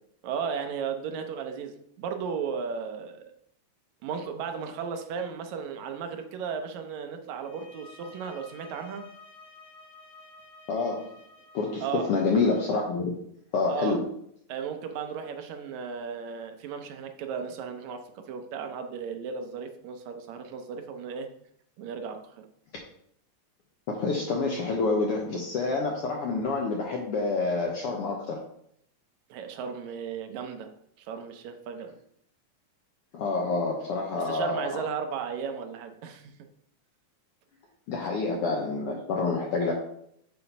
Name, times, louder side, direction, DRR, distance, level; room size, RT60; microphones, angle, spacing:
voice 1, 0.2-3.3 4.0-9.1 11.8-12.1 13.7-14.0 14.5-21.3 21.8-22.5 29.3-30.7 31.0-31.9 34.2-36.3, right 6 dB, 75° right, 6 dB, 2.0 m, -35 dB
sound 1, 7.4-12.7, left 3 dB, 40° left, 1.3 m, -52 dB
voice 2, 10.7-11.1 11.5-13.1 13.5-14.1 23.9-28.4 33.1-34.7 37.9-39.7, left 3 dB, 70° left, 0 dB, 1.4 m, -27 dB
5.8 x 4.2 x 5.3 m, 0.71 s
omnidirectional pair, 3.5 m